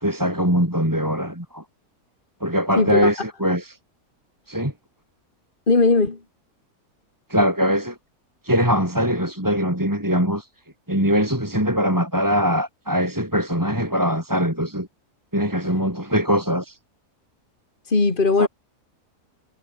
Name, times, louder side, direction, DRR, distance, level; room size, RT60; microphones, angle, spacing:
voice 1, 0.0-1.6 2.4-3.8 4.5-4.7 7.3-7.9 8.4-10.4 10.9-14.9 15.3-16.7 18.4-18.5, equal, 10° right, 5.5 m, -22 dB
voice 2, 2.8-3.1 5.7-6.2 17.9-18.5, left 3 dB, 35° left, 2.7 m, -18 dB
omnidirectional pair, 1.6 m